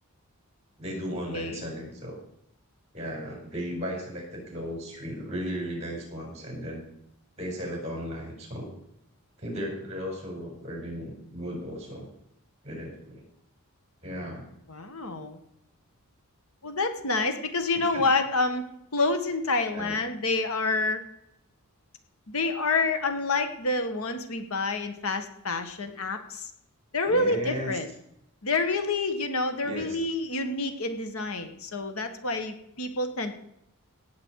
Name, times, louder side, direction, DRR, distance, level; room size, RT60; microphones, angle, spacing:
voice 1, 0.8-2.2 2.9-6.8 7.4-8.7 9.4-12.1 12.6-13.2 14.0-14.5 17.7-18.1 19.7-20.0 27.1-27.8 29.6-30.0, equal, 30° right, 0 dB, 5.6 m, -36 dB
voice 2, 1.3-1.6 14.7-15.4 16.6-18.6 18.9-21.0 22.3-26.5 26.9-27.9 28.4-33.3, left 3 dB, 75° left, 8 dB, 1.5 m, -28 dB
17.5 x 8.2 x 4.7 m, 0.78 s
head